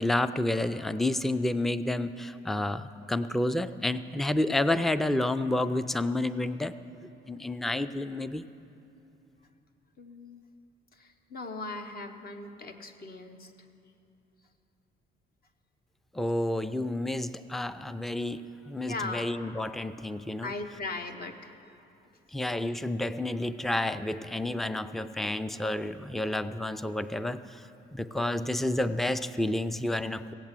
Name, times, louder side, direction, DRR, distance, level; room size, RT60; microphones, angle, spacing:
voice 1, 0.0-6.8 7.3-8.5 16.1-20.5 22.3-30.3, left 1 dB, ahead, 13 dB, 0.4 m, -30 dB
voice 2, 10.0-10.4 10.9-13.5 18.9-19.3 20.4-21.5, left 3 dB, 50° left, 6 dB, 1.1 m, -39 dB
16.5 x 8.0 x 7.4 m, 2.8 s
cardioid pair, 90°, 20 cm